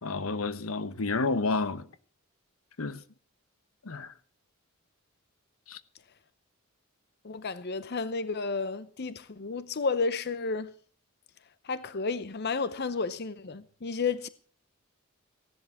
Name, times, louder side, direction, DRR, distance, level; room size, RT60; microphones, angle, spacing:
voice 1, 0.0-1.9 2.8-3.0 3.8-4.1 5.7-5.8, left 3 dB, 80° left, 0.9 m, -30 dB
voice 2, 7.2-10.7 11.6-14.3, left 4 dB, 50° left, 0.7 m, -32 dB
16.0 x 11.0 x 5.9 m
head